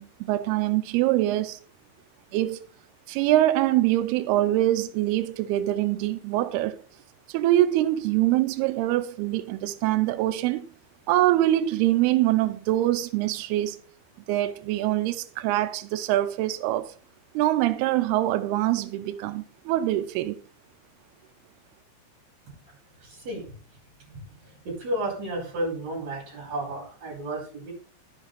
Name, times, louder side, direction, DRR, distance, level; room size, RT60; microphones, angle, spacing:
voice 1, 0.0-1.6 2.3-2.6 3.1-6.8 7.3-10.7 11.1-13.8 14.3-16.9 17.3-20.4, right 14 dB, 90° right, 2.3 m, -24 dB
voice 2, 23.0-23.4 24.1-24.3 24.6-27.7, right 1 dB, 35° right, 6.0 m, -32 dB
11.0 x 8.1 x 4.2 m
omnidirectional pair, 5.4 m